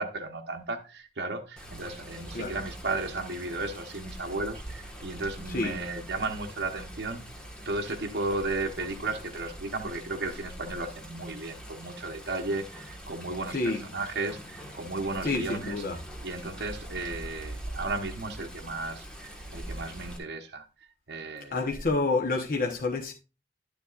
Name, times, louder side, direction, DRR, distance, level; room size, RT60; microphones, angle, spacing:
voice 1, 0.0-7.3 7.6-15.8 16.2-20.7 21.1-21.7, right 2 dB, 70° right, 1.0 m, -34 dB
Water, 1.6-20.2, right 1 dB, 5° left, 1.4 m, -43 dB
voice 2, 13.5-13.8 15.2-16.0 21.5-23.1, left 3 dB, 55° left, 1.0 m, -28 dB
11.0 x 7.0 x 2.4 m
head